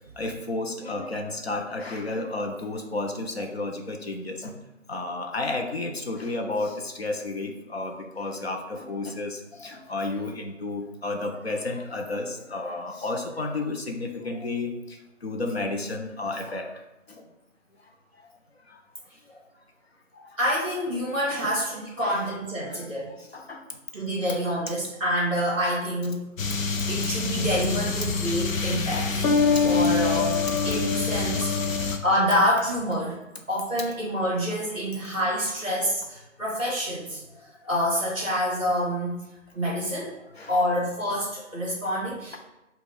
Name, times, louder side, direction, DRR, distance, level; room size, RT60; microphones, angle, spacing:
voice 1, 0.2-4.6 4.9-16.8 17.2-17.3 18.7-18.8 19.3-19.4 21.3-21.6 22.0-22.3 22.7-22.9 23.2-23.6 24.4-24.5 29.5-29.6 31.7-31.9 40.3-40.5, left 2 dB, 55° left, 3 dB, 0.6 m, -32 dB
voice 2, 20.1-23.1 23.9-26.2 26.9-29.4 29.6-33.2 33.5-37.2 37.6-39.2 39.5-40.1 40.5-42.4, equal, 10° left, -7 dB, 1.4 m, -27 dB
sound 1, 26.4-32.0, left 4 dB, 85° left, 0.7 m, -25 dB
6.0 x 2.4 x 3.4 m, 0.94 s
hypercardioid pair, 180°, 39 cm